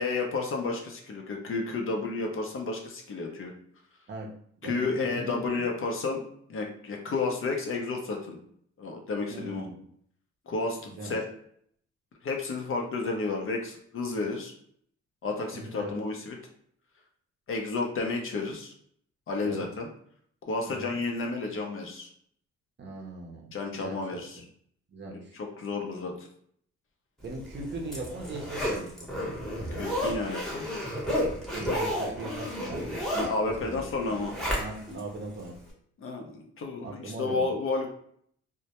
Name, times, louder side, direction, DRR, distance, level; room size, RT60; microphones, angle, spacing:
voice 1, 0.0-3.5 4.6-6.2 6.5-8.4 8.8-9.7 10.5-11.3 12.2-14.5 15.2-16.4 17.5-18.7 19.3-19.9 20.5-22.1 23.5-24.4 25.1-26.3 29.7-30.7 33.1-34.3 36.0-37.9, left 3 dB, 45° left, 2 dB, 0.6 m, -31 dB
voice 2, 4.6-5.7 9.3-9.8 11.0-11.1 15.5-15.9 19.4-19.6 20.7-20.9 22.8-24.0 24.9-25.3 27.2-29.2 31.5-32.8 33.6-33.8 34.6-35.6 36.8-37.5, right 2 dB, 35° right, -1 dB, 0.6 m, -39 dB
Zipper (clothing), 27.4-35.0 35.4-35.5, equal, ahead, 0.8 m, -32 dB
2.2 x 2.0 x 2.8 m, 0.64 s
cardioid pair, 90°, 30 cm